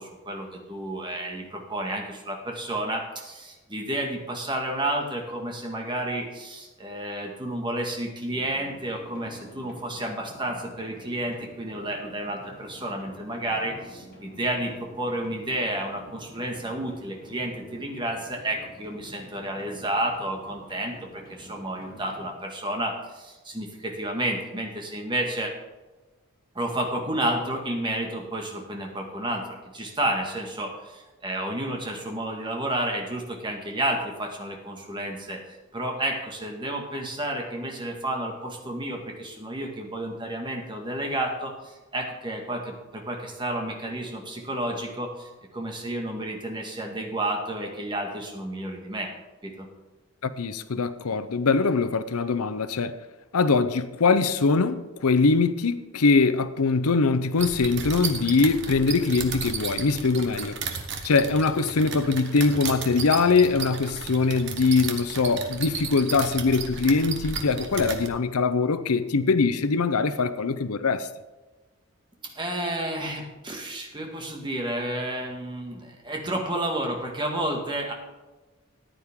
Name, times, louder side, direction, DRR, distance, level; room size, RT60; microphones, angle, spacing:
voice 1, 0.0-25.5 26.6-35.4 35.7-49.1 49.4-49.7 72.2-77.9, right 1 dB, 20° right, 1.8 m, -31 dB
sound 1, 8.3-22.3, equal, 40° left, 2.7 m, -48 dB
voice 2, 50.2-52.9 53.3-60.6 61.0-71.1, left 4 dB, 85° left, 0.7 m, -22 dB
sound 2, 57.4-68.1, right 5 dB, 55° right, 1.2 m, -34 dB
14.5 x 9.9 x 3.7 m
head